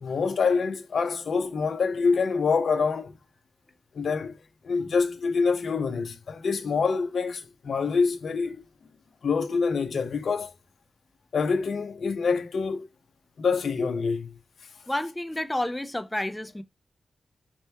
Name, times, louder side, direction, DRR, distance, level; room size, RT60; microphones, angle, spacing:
voice 1, 0.0-3.1 4.0-4.3 4.6-8.6 9.2-10.5 11.3-12.8 13.4-14.3, left 5 dB, 75° left, 0.7 m, -26 dB
voice 2, 14.9-16.6, left 1 dB, 15° left, 0.6 m, -30 dB
4.2 x 3.0 x 3.4 m
cardioid pair, 65°, 0 cm